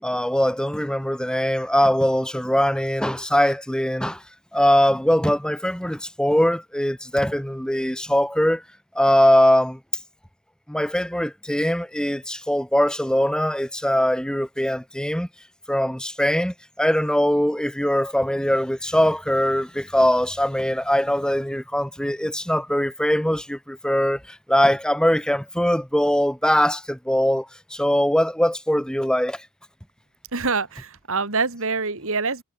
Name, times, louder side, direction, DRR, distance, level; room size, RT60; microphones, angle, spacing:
voice 1, 0.0-4.2 4.5-8.6 9.0-9.8 10.7-15.3 15.7-29.4, equal, 5° left, 5.2 m, -21 dB
voice 2, 30.3-32.4, right 4 dB, 65° right, 3.0 m, -25 dB
head